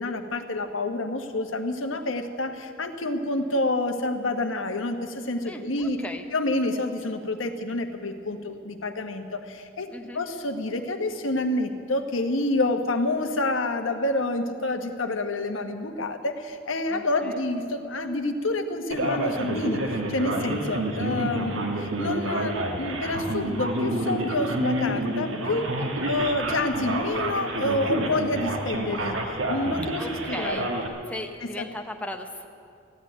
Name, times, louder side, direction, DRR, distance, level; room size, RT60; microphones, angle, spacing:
voice 1, 0.0-6.0 6.3-9.9 10.1-25.7 26.1-29.2 29.5-30.7 31.4-31.7, left 2 dB, 80° left, 6 dB, 1.2 m, -28 dB
voice 2, 5.4-6.2 9.9-10.2 16.9-17.4 25.8-26.1 30.0-30.7 31.1-32.5, left 1 dB, 5° left, 4 dB, 0.8 m, -37 dB
Male speech man speaking, 18.9-30.9, right 1 dB, 80° right, 1.7 m, -29 dB
15.0 x 10.0 x 9.2 m, 2.4 s
head